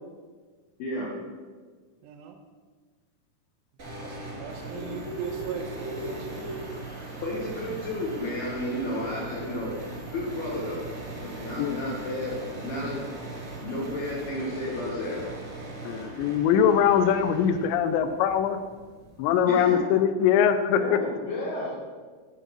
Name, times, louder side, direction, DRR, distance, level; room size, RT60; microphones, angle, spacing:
voice 1, 0.8-1.1 7.2-10.8 11.2-13.0 13.6-15.3 19.4-19.8 20.7-21.7, left 1 dB, 65° left, -5 dB, 2.6 m, -32 dB
voice 2, 2.0-2.4 3.9-6.5, right 7 dB, 90° right, 5 dB, 2.5 m, -38 dB
sound 1, 3.8-19.8, right 3 dB, 35° right, 1.2 m, -40 dB
sound 2, 4.5-14.3, right 1 dB, 60° right, 1.0 m, -43 dB
voice 3, 11.6-11.9 15.9-18.6 19.2-21.0, left 8 dB, 85° left, 10 dB, 2.6 m, -22 dB
8.7 x 5.1 x 6.4 m, 1.5 s
omnidirectional pair, 5.6 m